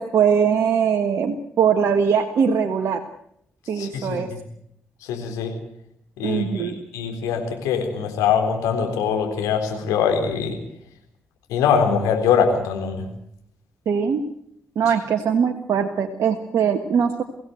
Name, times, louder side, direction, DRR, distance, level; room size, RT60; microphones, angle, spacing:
voice 1, 0.0-3.0 3.7-4.3 6.2-6.7 13.8-14.2 14.7-17.2, right 7 dB, 65° right, 6 dB, 1.5 m, -21 dB
voice 2, 3.8-4.4 5.0-5.5 6.2-10.6 11.5-13.0, left 6 dB, 80° left, 5 dB, 3.9 m, -23 dB
23.0 x 17.0 x 7.9 m, 0.73 s
hypercardioid pair, 40°, 6 cm